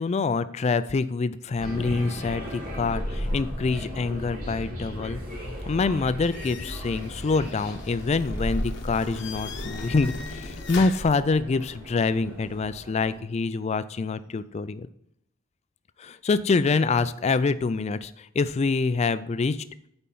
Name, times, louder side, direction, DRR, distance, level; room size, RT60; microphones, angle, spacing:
voice 1, 0.0-14.9 16.0-19.6, left 4 dB, 30° left, 14 dB, 0.3 m, -26 dB
sound 1, 1.6-13.2, equal, 40° right, 3.5 m, -35 dB
sound 2, 6.2-11.2, left 4 dB, 55° left, 0.9 m, -39 dB
8.4 x 4.4 x 5.4 m, 0.76 s
head